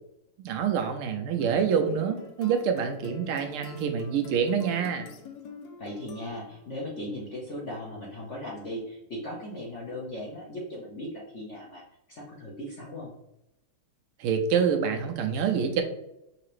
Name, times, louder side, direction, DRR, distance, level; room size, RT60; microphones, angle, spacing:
voice 1, 0.4-5.1 14.2-15.8, right 7 dB, 85° right, 5 dB, 1.6 m, -26 dB
sound 1, 1.4-6.8, left 5 dB, 80° left, 0.9 m, -47 dB
voice 2, 5.8-11.8 12.1-13.1, left 1 dB, 50° left, -4 dB, 0.9 m, -38 dB
5.7 x 2.8 x 3.2 m, 0.86 s
omnidirectional pair, 2.4 m